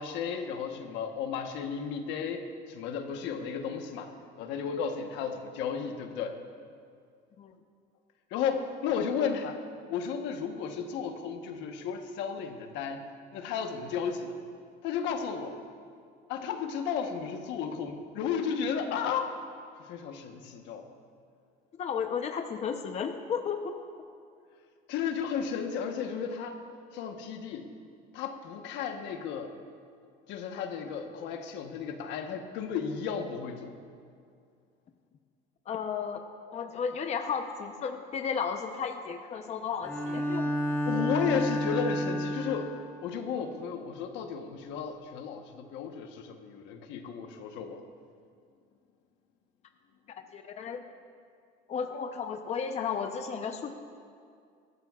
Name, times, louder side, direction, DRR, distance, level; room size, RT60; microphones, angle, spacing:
voice 1, 0.0-4.1 4.4-6.4 8.3-9.6 9.9-13.0 13.3-14.4 14.8-15.5 16.3-19.3 19.8-20.9 24.9-26.6 26.9-27.7 28.1-29.5 30.3-33.7 40.9-42.7 43.0-47.8, left 6 dB, 75° left, 5 dB, 1.2 m, -33 dB
voice 2, 21.8-23.7 35.7-36.2 36.5-40.5 50.3-50.8 51.7-53.7, left 6 dB, 35° left, 5 dB, 0.8 m, -33 dB
Bowed string instrument, 39.8-43.0, equal, 15° left, 1.8 m, -30 dB
20.0 x 14.0 x 2.4 m, 2.3 s
cardioid pair, 120°, 19 cm